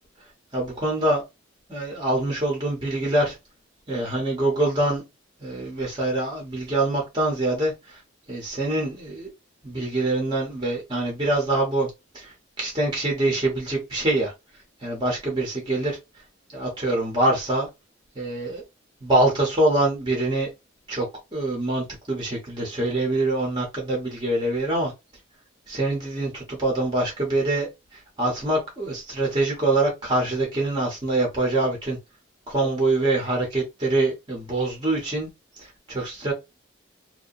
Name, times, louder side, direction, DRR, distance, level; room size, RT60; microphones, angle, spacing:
voice 1, 0.5-1.2 1.7-3.4 3.9-5.0 5.4-8.0 8.3-9.3 9.6-11.9 12.1-14.3 14.8-16.0 16.5-17.7 18.2-18.6 19.0-20.5 20.9-24.9 25.7-32.0 32.5-35.3 35.6-36.3, right 2 dB, 25° right, 0.9 m, -25 dB
2.8 x 2.1 x 2.5 m
head